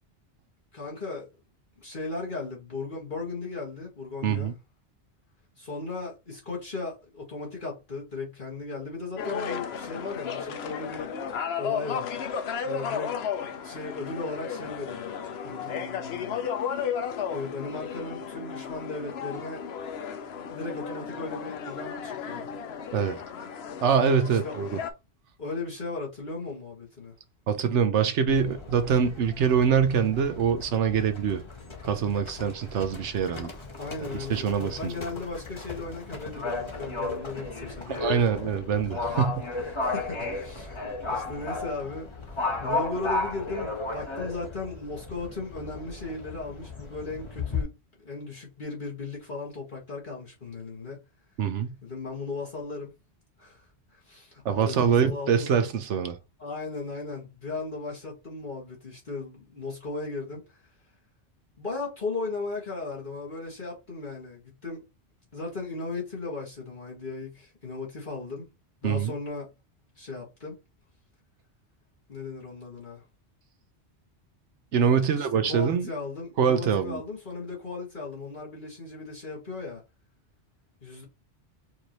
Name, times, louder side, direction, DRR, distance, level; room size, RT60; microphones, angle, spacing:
voice 1, 0.7-1.3 1.8-4.5 5.6-12.1 12.6-13.1 13.6-15.1 15.4-16.4 16.7-16.8 17.3-19.6 20.5-22.5 24.3-24.6 25.4-27.1 33.8-39.2 39.5-42.1 42.6-47.7 48.0-51.0 51.8-52.9 53.4-55.5 56.4-60.6 61.6-64.8 65.3-68.4 68.8-69.5 70.0-70.6 72.1-73.0 75.1-79.8 80.8-81.1, left 3 dB, 45° left, 1.6 m, -37 dB
voice 2, 4.2-4.5 22.9-23.2 23.8-24.8 27.5-31.4 31.8-33.5 34.1-34.9 38.0-39.4 51.4-51.7 54.4-56.2 68.8-69.1 74.7-75.9 76.4-77.0, right 7 dB, 80° right, 1.0 m, -24 dB
sound 1, 9.2-24.9, left 7 dB, 65° left, 0.9 m, -34 dB
Livestock farm animals working animals, 28.3-47.6, left 3 dB, 25° left, 1.1 m, -35 dB
4.7 x 2.7 x 3.0 m
omnidirectional pair, 1.2 m